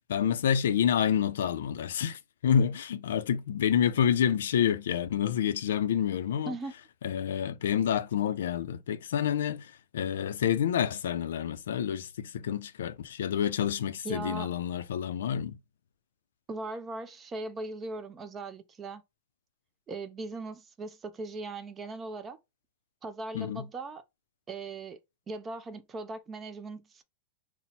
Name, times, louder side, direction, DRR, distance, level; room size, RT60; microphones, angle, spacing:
voice 1, 0.1-6.5 7.0-15.6 23.3-23.6, left 9 dB, 85° left, 0.4 m, -28 dB
voice 2, 14.0-14.5 16.5-19.0 19.9-22.4 23.0-24.0 24.5-25.0 25.3-27.0, right 3 dB, 15° right, 0.4 m, -39 dB
4.2 x 2.0 x 4.0 m
supercardioid pair, 165°, 0 cm